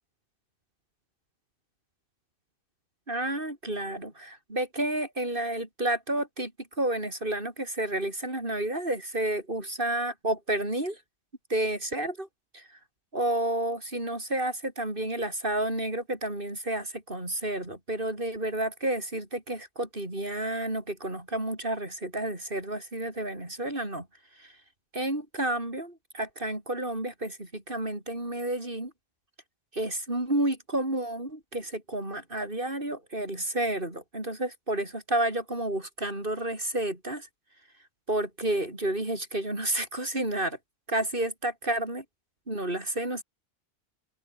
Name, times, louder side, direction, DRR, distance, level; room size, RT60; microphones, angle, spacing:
voice 1, 3.1-6.5 6.8-11.0 11.5-12.3 12.5-12.8 13.1-24.1 24.4-24.6 24.9-28.9 29.7-37.3 38.1-40.6 40.9-42.0 42.5-43.2, right 1 dB, 55° right, 5.9 m, -30 dB
omnidirectional pair, 1.1 m